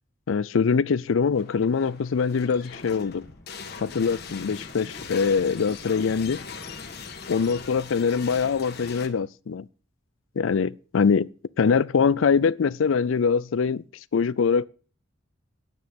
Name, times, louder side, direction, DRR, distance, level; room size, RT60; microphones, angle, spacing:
voice 1, 0.3-3.3 3.8-6.4 7.3-9.7 10.4-11.3 11.6-13.8 14.1-14.7, left 5 dB, 75° left, 0.4 m, -23 dB
sound 1, 1.3-9.1, left 5 dB, 55° left, 1.5 m, -40 dB
sound 2, 3.3-8.7, equal, 15° left, 1.1 m, -51 dB
9.4 x 9.3 x 5.2 m
head